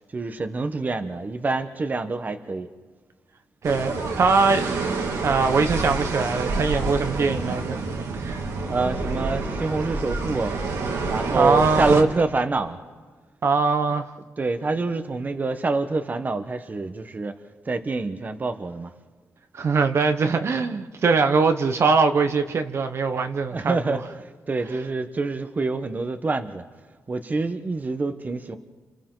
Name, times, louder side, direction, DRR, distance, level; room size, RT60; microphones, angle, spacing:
voice 1, 0.0-2.7 8.7-10.6 11.1-12.8 14.4-17.4 17.6-18.9 23.5-26.6 27.1-28.6, right 3 dB, 30° right, 1.2 m, -26 dB
voice 2, 3.6-4.8 5.2-7.8 8.2-8.4 11.4-12.0 13.4-14.1 19.5-24.0, right 4 dB, 50° right, 1.2 m, -22 dB
sound 1, 3.6-12.0, right 3 dB, 85° right, 2.8 m, -28 dB
29.0 x 29.0 x 4.0 m
cardioid pair, 110°, 6 cm